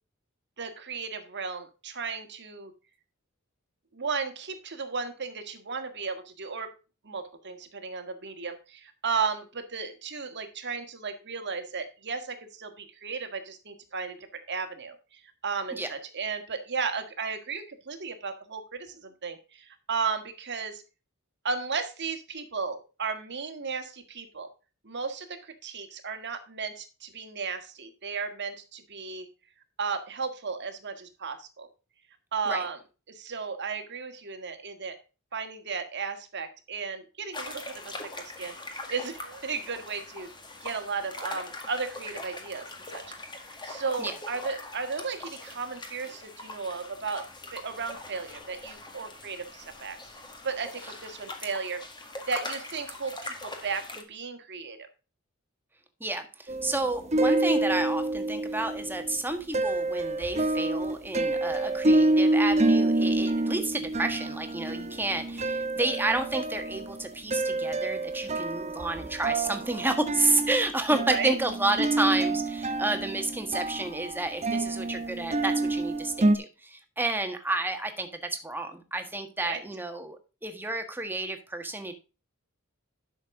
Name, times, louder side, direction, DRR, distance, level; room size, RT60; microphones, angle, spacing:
voice 1, 0.6-2.7 3.9-6.7 7.0-20.8 21.4-24.5 24.8-29.3 29.8-31.7 32.3-32.8 33.1-35.0 35.3-37.9 38.4-38.6 38.9-40.3 40.6-42.7 42.9-43.0 43.6-47.2 47.5-50.0 50.4-51.8 52.3-54.8 70.9-71.3 79.4-79.6, right 5 dB, 55° right, 7 dB, 1.7 m, -34 dB
sound 1, 37.3-54.0, left 2 dB, 20° left, 1.8 m, -42 dB
voice 2, 56.0-82.0, right 2 dB, 10° right, 6 dB, 1.5 m, -30 dB
sound 2, 56.5-59.2 59.5-76.4, right 2 dB, 30° right, 0.8 m, -27 dB
11.0 x 6.4 x 3.7 m, 0.32 s
head